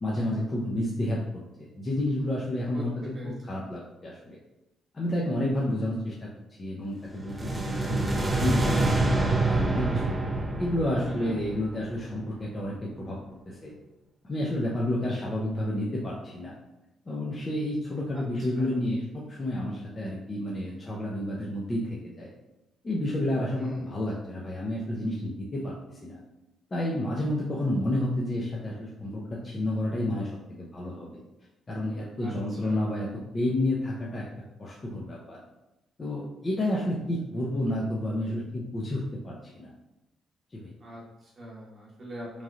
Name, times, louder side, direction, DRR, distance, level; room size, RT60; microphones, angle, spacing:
voice 1, 0.0-3.0 3.5-4.4 4.9-6.3 6.6-10.1 10.6-13.2 13.5-13.7 14.2-16.5 17.1-22.3 22.8-26.2 26.7-30.3 30.6-31.2 31.7-33.1 33.3-34.3 34.6-35.4 36.0-39.7 40.5-40.7, left 1 dB, 30° left, -4 dB, 0.6 m, -30 dB
voice 2, 3.2-3.6 11.0-11.4 18.1-18.8 23.6-24.0 32.2-32.9 40.8-42.4, right 1 dB, 45° right, -4 dB, 0.8 m, -43 dB
sound 1, 7.1-12.3, right 2 dB, 20° right, 0.4 m, -27 dB
3.1 x 2.7 x 2.4 m, 0.94 s
cardioid pair, 90°, 0 cm